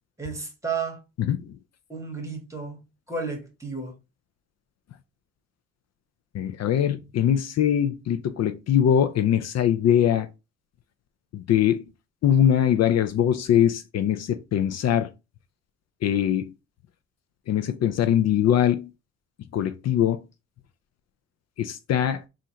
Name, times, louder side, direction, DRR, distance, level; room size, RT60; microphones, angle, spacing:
voice 1, 0.2-1.0 1.9-3.9, right 4 dB, 10° right, 1.7 m, -33 dB
voice 2, 6.3-10.3 11.3-11.8 12.2-15.1 16.0-16.5 17.5-18.9 19.5-20.2 21.6-22.2, left 10 dB, 60° left, 0.5 m, -22 dB
3.8 x 2.5 x 4.3 m
cardioid pair, 90°, 30 cm